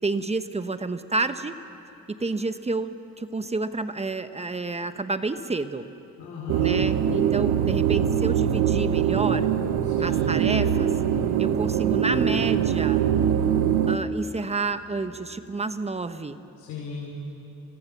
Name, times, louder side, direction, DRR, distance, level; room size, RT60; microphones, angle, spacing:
voice 1, 0.0-1.6 2.1-5.9 6.6-9.5 10.0-11.0 11.4-13.0 13.9-16.4, right 3 dB, 20° right, 10 dB, 1.2 m, -29 dB
voice 2, 6.2-6.7 9.8-10.5 16.6-17.1, left 4 dB, 90° left, -3 dB, 5.0 m, -36 dB
sound 1, 6.5-14.0, right 9 dB, 85° right, 1.1 m, -23 dB
29.5 x 24.5 x 7.1 m, 3.0 s
cardioid pair, 90°, 30 cm